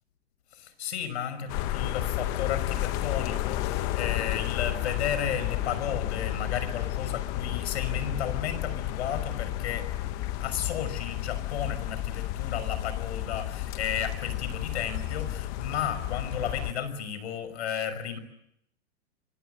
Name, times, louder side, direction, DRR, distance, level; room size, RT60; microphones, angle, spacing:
voice 1, 0.5-9.9 10.4-18.2, left 8 dB, 70° left, 12 dB, 5.9 m, -33 dB
sound 1, 1.5-16.7, left 14 dB, 25° left, 1.1 m, -32 dB
26.0 x 24.5 x 8.0 m, 0.78 s
supercardioid pair, 175°, 34 cm